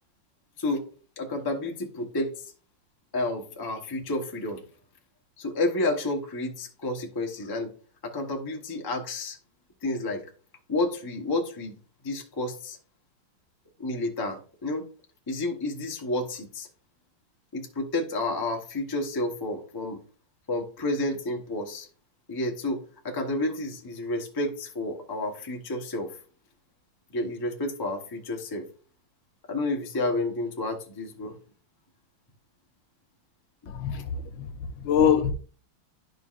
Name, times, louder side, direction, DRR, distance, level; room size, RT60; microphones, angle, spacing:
voice 1, 1.2-2.3 3.1-4.6 5.4-7.7 8.0-9.4 9.8-10.2 10.7-11.8 12.0-12.8 13.8-14.8 15.3-16.7 17.5-20.0 20.5-21.9 22.3-26.2 27.1-28.7 29.5-31.3 33.6-34.0, left 2 dB, 25° left, 0.5 m, -30 dB
voice 2, 33.7-35.3, left 8 dB, 75° left, 1.3 m, -25 dB
11.0 x 5.2 x 2.5 m
omnidirectional pair, 2.4 m